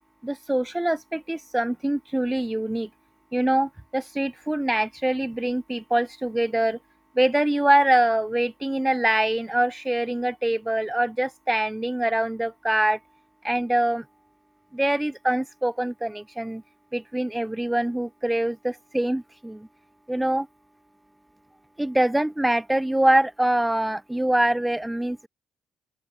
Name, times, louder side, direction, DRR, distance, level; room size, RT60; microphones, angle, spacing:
voice 1, 0.2-2.9 3.3-6.8 7.1-13.0 13.4-14.0 14.7-16.6 16.9-19.7 20.1-20.5 21.8-25.3, right 1 dB, 10° right, 4.2 m, -24 dB
open air
cardioid pair, 90°, 0 cm